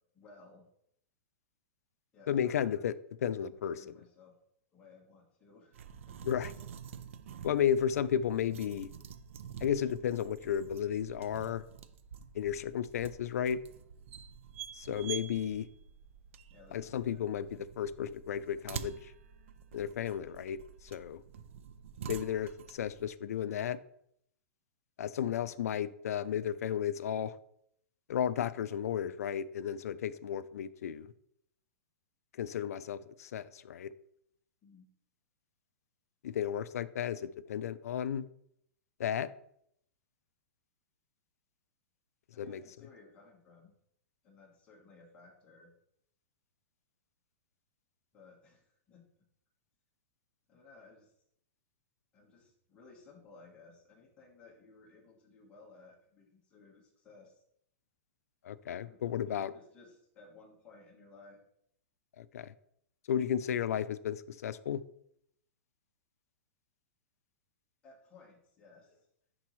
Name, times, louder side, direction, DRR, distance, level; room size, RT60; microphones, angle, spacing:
voice 1, 0.1-0.7 2.1-2.6 3.4-4.3 4.7-6.2 16.5-17.2 34.6-34.9 42.3-43.7 44.2-45.7 48.1-49.0 50.5-51.2 52.1-57.4 58.8-59.0 59.3-61.4 67.8-69.1, left 3 dB, 15° left, 1.3 m, -58 dB
voice 2, 2.3-3.9 6.2-6.5 7.4-8.9 9.6-11.6 12.3-13.6 14.7-15.7 16.7-19.1 19.7-21.2 22.0-23.8 25.0-27.4 28.1-31.1 32.3-33.9 36.2-38.3 39.0-39.3 42.4-42.6 58.4-59.5 62.2-62.5 63.1-64.8, left 9 dB, 90° left, 0.4 m, -33 dB
sound 1, 5.7-23.1, right 8 dB, 60° right, 0.5 m, -48 dB
10.5 x 4.0 x 3.1 m
supercardioid pair, 175°, 8 cm